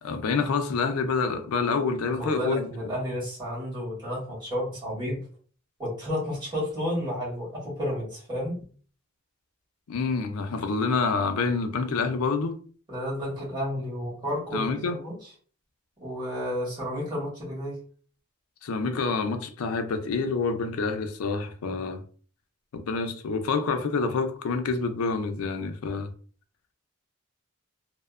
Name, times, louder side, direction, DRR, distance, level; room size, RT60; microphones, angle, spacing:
voice 1, 0.0-2.7 9.9-12.6 14.5-15.0 18.6-22.0 22.7-26.1, left 4 dB, 85° left, 0.4 m, -27 dB
voice 2, 2.1-5.2 5.8-8.6 12.9-15.2 16.0-17.8, equal, 20° right, 1.4 m, -31 dB
2.7 x 2.1 x 2.4 m
head